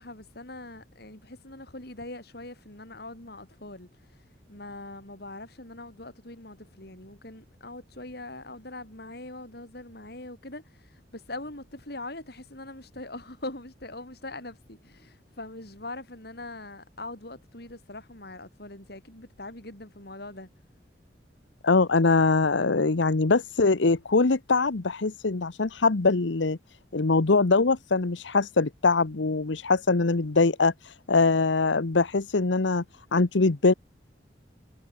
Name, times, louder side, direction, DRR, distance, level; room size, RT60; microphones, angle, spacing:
voice 1, 0.0-20.5, left 2 dB, 60° left, 7.6 m, -42 dB
voice 2, 21.6-26.6 26.9-32.8 33.1-33.7, left 3 dB, 85° left, 1.0 m, -23 dB
head